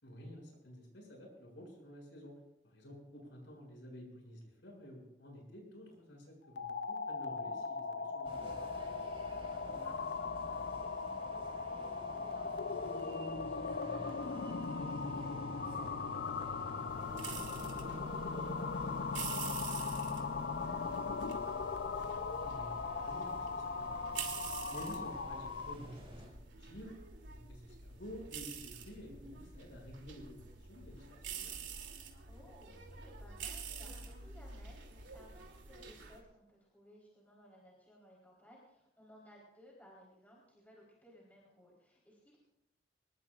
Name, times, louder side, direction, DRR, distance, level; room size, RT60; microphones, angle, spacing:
voice 1, 0.0-2.4 2.6-8.6 22.5-24.4 24.7-31.6, equal, 80° left, 0 dB, 7.0 m, -51 dB
sound 1, 6.5-25.9, left 4 dB, 65° left, 0.6 m, -39 dB
sound 2, 8.2-26.3, equal, 30° right, 5.5 m, -51 dB
voice 2, 9.5-21.7 32.3-42.4, equal, 10° left, -5 dB, 4.0 m, -60 dB
sound 3, 16.9-36.2, right 6 dB, 85° right, 2.9 m, -48 dB
25.0 x 21.0 x 2.5 m, 0.85 s
head